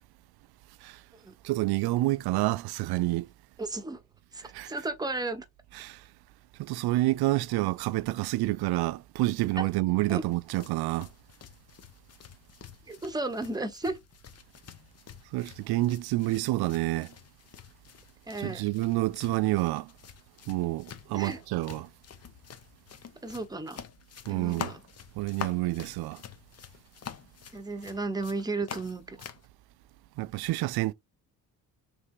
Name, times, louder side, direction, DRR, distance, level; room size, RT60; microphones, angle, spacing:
voice 1, 1.4-3.3 4.5-4.7 5.8-6.0 6.6-11.1 15.3-17.1 18.4-19.9 20.5-21.9 24.3-24.7 25.2-26.2 30.2-30.9, right 18 dB, 65° right, 0.5 m, -28 dB
voice 2, 3.6-4.0 4.3-5.5 9.6-9.7 10.1-10.2 12.9-14.0 18.3-18.6 21.1-21.4 23.2-23.8 24.3-24.8 27.5-29.2, right 2 dB, 10° right, 0.9 m, -34 dB
sound 1, 10.3-29.5, left 8 dB, 40° left, 0.7 m, -47 dB
3.4 x 2.8 x 4.5 m
supercardioid pair, 65°, 41 cm